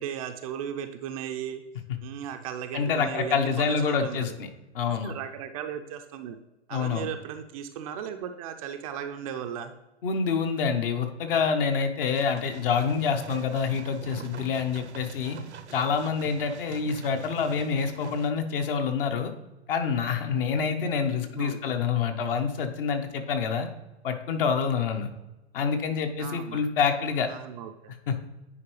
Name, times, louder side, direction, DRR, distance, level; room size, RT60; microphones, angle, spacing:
voice 1, 0.0-1.6 2.0-4.4 5.0-6.4 6.7-9.7 21.2-21.8 26.2-26.6 27.3-27.9, right 9 dB, 30° right, 6 dB, 0.5 m, -36 dB
voice 2, 2.7-4.5 4.7-5.1 6.7-7.1 10.0-15.4 15.7-19.3 19.7-23.7 24.0-25.1 25.5-27.3 28.1-28.2, left 6 dB, 55° left, 6 dB, 1.1 m, -27 dB
sound 1, 12.1-18.3, right 7 dB, 75° right, 0.8 m, -44 dB
9.9 x 4.6 x 3.1 m, 1.0 s
figure-of-eight pair, 115°, 34 cm